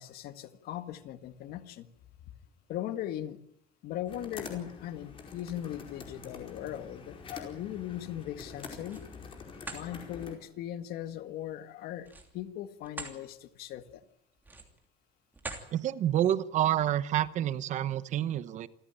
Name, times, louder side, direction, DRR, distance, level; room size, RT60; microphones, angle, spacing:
voice 1, 0.0-1.9 2.7-3.4 3.8-9.0 9.7-14.0, left 12 dB, 60° left, 10 dB, 1.8 m, -39 dB
sound 1, 4.1-10.3, left 4 dB, 30° left, 4.8 m, -46 dB
sound 2, 8.6-9.1 9.5-9.9 12.0-13.2 13.6-13.8 14.4-14.9 15.3-15.7, right 2 dB, 10° right, 2.9 m, -43 dB
voice 2, 15.7-18.7, right 11 dB, 45° right, 15 dB, 1.0 m, -28 dB
28.0 x 15.5 x 9.0 m, 0.74 s
cardioid pair, 175°, 18 cm